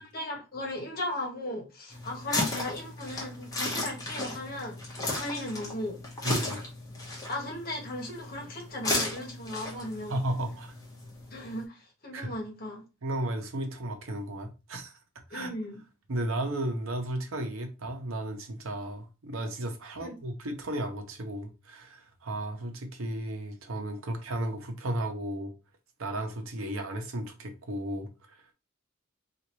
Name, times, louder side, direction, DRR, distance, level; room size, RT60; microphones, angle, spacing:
voice 1, 0.0-6.0 7.3-10.2 11.3-12.8 15.3-15.8 20.0-20.1, left 1 dB, 45° left, 1.1 m, -37 dB
sound 1, 1.9-11.6, left 2 dB, 15° left, 1.0 m, -35 dB
voice 2, 6.2-6.6 10.1-10.7 12.1-12.3 13.0-14.9 15.3-15.5 16.1-25.5 26.0-28.1, right 1 dB, 75° right, 0.8 m, -34 dB
3.8 x 2.5 x 3.0 m
head